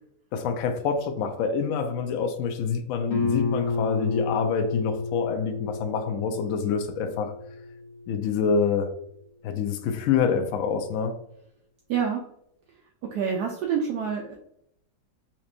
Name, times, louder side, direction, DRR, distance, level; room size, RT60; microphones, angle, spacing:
voice 1, 0.3-7.3 8.1-8.9 9.4-11.1, left 6 dB, 80° left, 0.7 m, -26 dB
Guitar, 3.1-8.5, left 3 dB, 50° left, 0.9 m, -31 dB
voice 2, 11.9-12.2 13.1-14.4, right 7 dB, 70° right, 1.0 m, -27 dB
4.3 x 3.0 x 2.5 m
omnidirectional pair, 2.0 m